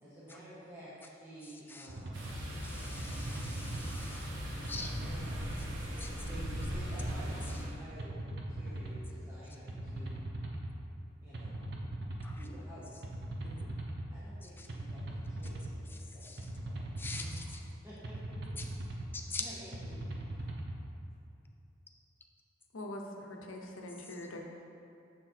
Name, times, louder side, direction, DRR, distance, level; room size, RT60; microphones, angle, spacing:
voice 1, 0.0-2.3 5.0-5.5 6.0-10.2 11.2-11.6 12.4-13.1 14.1-17.4 17.8-18.1 19.1-20.0, right 1 dB, 15° right, -10 dB, 0.9 m, -51 dB
sound 1, 1.9-2.3 3.0-4.0 4.6-5.7 6.3-7.4 8.0-9.0 9.7-10.7 11.3-12.4 13.0-14.1 14.7-15.7 16.4-17.4 18.0-19.1 19.7-20.8, right 1 dB, 60° right, 0.6 m, -40 dB
sound 2, 2.1-7.7, equal, 80° right, 1.2 m, -40 dB
voice 2, 2.6-4.3 4.7-4.9 6.0-6.1 12.2-12.4 14.4-14.7 15.9-16.5 17.0-17.6 18.6-18.7 19.1-19.4, left 4 dB, 10° left, 2 dB, 0.3 m, -44 dB
voice 3, 13.4-13.8 17.2-17.4 22.7-24.4, left 1 dB, 85° left, 1 dB, 0.7 m, -44 dB
6.5 x 3.9 x 4.4 m, 2.7 s
head